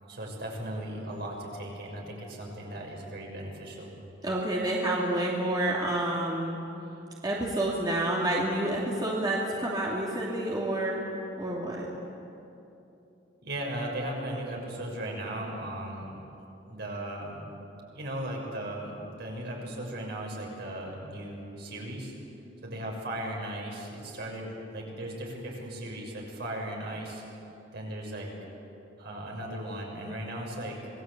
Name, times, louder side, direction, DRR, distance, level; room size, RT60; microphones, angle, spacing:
voice 1, 0.0-3.9 13.4-16.2 16.7-17.5 17.9-22.1 22.6-27.2 27.7-28.3 29.0-30.9, right 1 dB, 60° right, -1 dB, 6.5 m, -37 dB
voice 2, 4.2-6.6 7.2-11.1 11.4-11.9, right 1 dB, 20° right, -4 dB, 2.8 m, -29 dB
27.0 x 20.0 x 8.4 m, 2.9 s
head